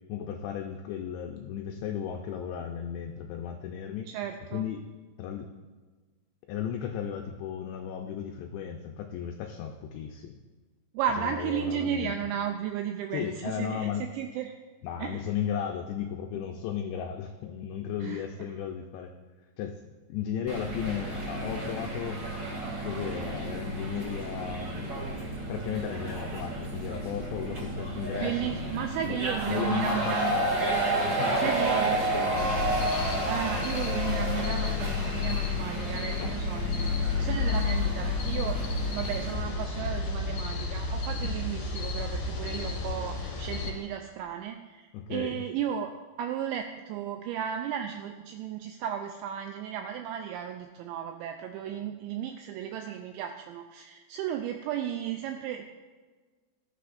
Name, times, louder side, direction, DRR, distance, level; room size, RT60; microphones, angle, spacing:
voice 1, 0.1-4.1 4.5-4.8 5.2-5.5 6.5-10.4 11.2-12.1 13.1-14.1 14.8-19.1 19.6-19.8 20.1-22.2 22.8-25.0 25.5-29.2 29.4-30.5 31.1-32.6 36.2-36.3 41.2-41.4 44.9-45.4, left 8 dB, 80° left, 3 dB, 2.6 m, -35 dB
voice 2, 4.1-4.6 10.9-14.5 15.0-15.2 18.0-18.2 28.2-30.4 31.4-32.0 33.3-45.9 46.2-55.6, right 9 dB, 85° right, 5 dB, 2.6 m, -34 dB
sound 1, 20.5-39.3, right 2 dB, 35° right, 1.9 m, -32 dB
sound 2, 32.4-43.7, left 4 dB, 55° left, 2.9 m, -31 dB
16.5 x 11.0 x 2.5 m, 1.4 s
omnidirectional pair, 5.7 m